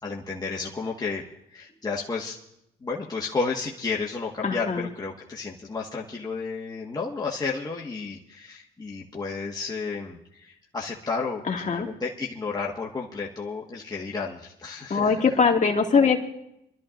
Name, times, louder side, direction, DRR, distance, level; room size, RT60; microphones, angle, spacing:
voice 1, 0.0-1.2 1.5-2.4 2.8-15.2, left 4 dB, 20° left, -3 dB, 1.6 m, -32 dB
voice 2, 4.4-4.9 11.5-11.9 14.9-16.2, left 5 dB, 40° left, 1 dB, 2.1 m, -22 dB
27.0 x 13.0 x 2.6 m, 0.78 s
cardioid pair, 90°, 20 cm